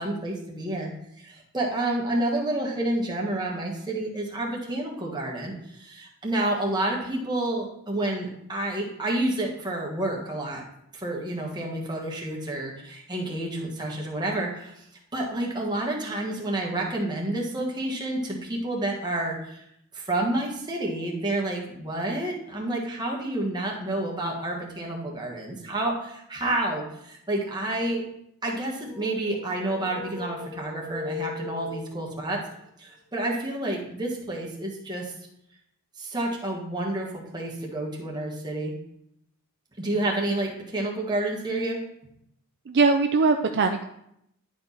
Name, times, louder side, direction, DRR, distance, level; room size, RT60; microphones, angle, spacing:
voice 1, 0.0-10.6 10.9-14.8 15.1-19.6 19.9-28.0 28.4-32.4 32.8-35.1 36.0-38.7 39.8-41.8, right 1 dB, 20° right, -2 dB, 1.5 m, -29 dB
sound 1, 28.8-32.4, left 4 dB, 5° left, 1.3 m, -38 dB
voice 2, 42.7-43.9, right 4 dB, 50° right, 5 dB, 0.4 m, -21 dB
11.0 x 4.6 x 4.1 m, 0.76 s
head